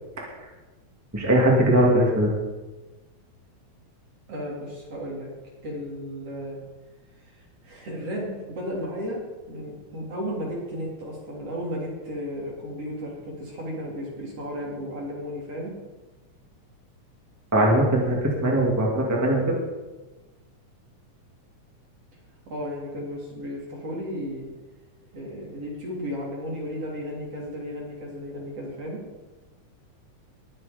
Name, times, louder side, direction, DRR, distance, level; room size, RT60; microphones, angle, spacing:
voice 1, 1.1-2.3 17.5-19.6, right 1 dB, 5° right, -3 dB, 2.1 m, -20 dB
voice 2, 4.3-5.3 5.6-6.6 7.2-9.2 9.5-15.8 22.5-24.5 25.1-29.0, equal, 50° right, -4 dB, 4.4 m, -34 dB
21.0 x 7.0 x 5.3 m, 1.2 s
omnidirectional pair, 3.4 m